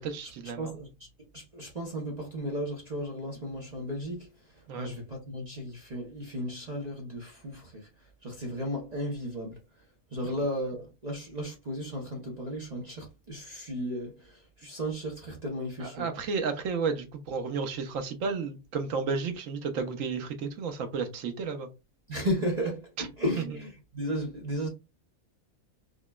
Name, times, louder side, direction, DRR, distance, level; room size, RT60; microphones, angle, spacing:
voice 1, 0.0-0.8 4.7-4.9 15.8-21.7 23.0-23.1 23.4-23.5, right 5 dB, 70° right, 1.0 m, -32 dB
voice 2, 0.6-1.1 1.3-7.9 8.2-9.6 10.1-16.1 22.1-24.7, equal, 35° right, 0.7 m, -34 dB
4.9 x 2.2 x 2.2 m
omnidirectional pair, 1.5 m